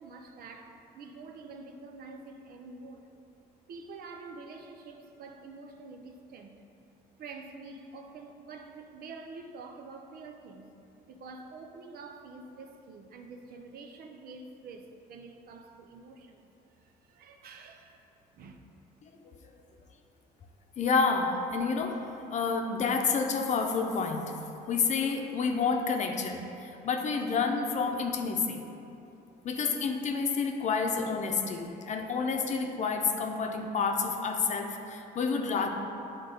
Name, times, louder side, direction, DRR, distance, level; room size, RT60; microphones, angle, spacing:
voice 1, 0.0-3.1 3.7-6.6 7.2-10.7 11.1-18.1 18.3-18.6, right 3 dB, 60° right, 5 dB, 0.7 m, -47 dB
voice 2, 19.0-19.4 20.8-28.6 29.4-35.7, left 5 dB, 45° left, 3 dB, 0.7 m, -29 dB
8.9 x 3.9 x 5.2 m, 2.9 s
cardioid pair, 110°, 17 cm